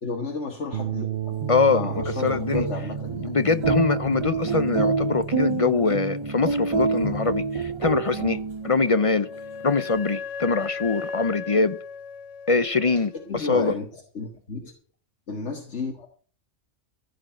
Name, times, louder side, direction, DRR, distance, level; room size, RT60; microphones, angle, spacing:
voice 1, 0.0-1.4 1.7-3.3 13.3-13.9 14.1-14.7 15.3-16.1, left 4 dB, 70° left, 2.0 m, -32 dB
sound 1, 0.7-9.2, right 12 dB, 60° right, 0.9 m, -36 dB
sound 2, 1.2-8.9, right 4 dB, 30° right, 0.6 m, -27 dB
voice 2, 1.5-2.7 3.2-8.4 8.6-9.3 9.6-11.8 12.5-13.7, left 4 dB, 40° left, 0.5 m, -23 dB
Wind instrument woodwind instrument, 8.6-13.3, left 6 dB, 90° left, 1.4 m, -37 dB
15.0 x 5.2 x 8.9 m
omnidirectional pair, 1.2 m